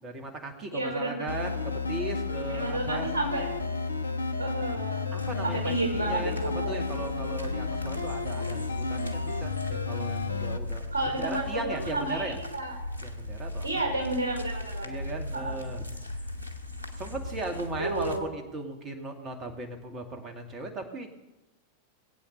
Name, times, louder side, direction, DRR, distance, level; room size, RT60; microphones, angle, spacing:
voice 1, 0.0-3.1 5.1-12.4 13.0-13.7 14.8-15.9 17.0-21.1, right 2 dB, 30° right, 4 dB, 2.3 m, -37 dB
voice 2, 0.7-1.4 2.5-3.5 4.4-5.1 5.4-6.9 10.9-12.8 13.6-15.0 15.3-15.6 17.8-18.2, right 2 dB, 65° right, 2 dB, 4.7 m, -31 dB
sound 1, 1.3-10.6, left 4 dB, 80° left, 0.8 m, -32 dB
sound 2, 5.2-18.2, left 2 dB, 85° right, 1.4 m, -39 dB
20.0 x 8.6 x 6.8 m, 1.0 s
figure-of-eight pair, 90°, 0 cm